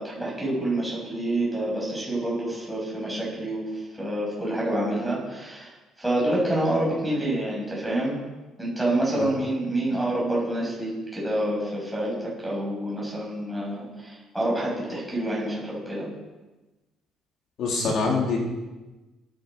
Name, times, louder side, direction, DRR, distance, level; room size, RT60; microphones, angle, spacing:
voice 1, 0.0-3.7 3.9-5.7 6.0-8.2 8.6-16.1, right 1 dB, ahead, -5 dB, 8.0 m, -27 dB
voice 2, 17.6-18.4, left 4 dB, 55° left, -2 dB, 3.7 m, -24 dB
17.5 x 14.5 x 5.5 m, 1.1 s
cardioid pair, 165°, 0 cm